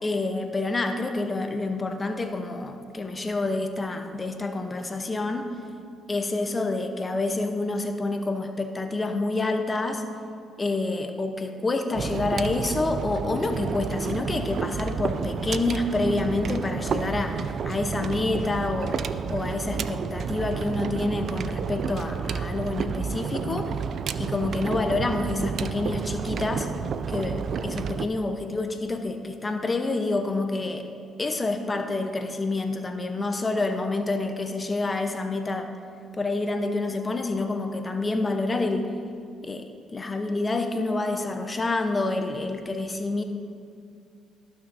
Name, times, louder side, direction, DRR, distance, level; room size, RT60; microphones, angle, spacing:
voice 1, 0.0-5.5 6.1-10.0 10.6-19.0 19.3-23.8 24.2-26.7 27.1-30.9 31.2-35.7 36.1-38.9 39.4-43.2, left 2 dB, 30° left, 6 dB, 1.0 m, -28 dB
sound 1, 11.9-28.1, right 6 dB, 60° right, 0.4 m, -30 dB
18.5 x 6.2 x 2.8 m, 2.4 s
supercardioid pair, 60°, 0 cm